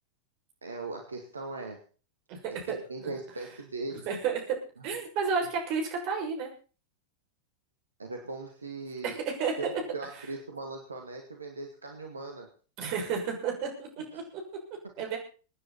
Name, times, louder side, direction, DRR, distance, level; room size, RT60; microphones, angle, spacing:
voice 1, 0.6-1.8 2.6-4.1 8.0-9.2 9.6-12.5 14.1-14.2, right 3 dB, 75° right, 3 dB, 2.2 m, -39 dB
voice 2, 2.3-2.8 4.1-4.4 4.8-6.5 9.0-9.7 12.8-14.4 15.0-15.2, right 5 dB, 45° right, 1 dB, 6.4 m, -31 dB
25.0 x 10.0 x 4.3 m, 0.37 s
figure-of-eight pair, 90°, 0 cm